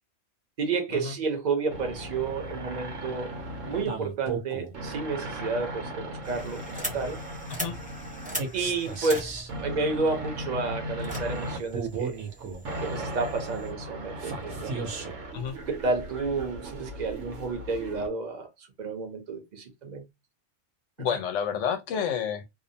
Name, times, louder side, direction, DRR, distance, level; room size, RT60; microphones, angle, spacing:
voice 1, 0.6-3.3 3.6-7.2 8.5-9.3 9.6-12.2 12.8-14.9 15.6-20.1, right 4 dB, 45° right, 0.6 m, -31 dB
sound 1, 1.7-18.1, right 2 dB, 90° right, 1.0 m, -36 dB
sound 2, 6.2-13.7, equal, 10° right, 0.6 m, -40 dB
voice 2, 21.0-22.4, left 8 dB, 80° left, 0.9 m, -29 dB
2.6 x 2.0 x 2.6 m
omnidirectional pair, 1.3 m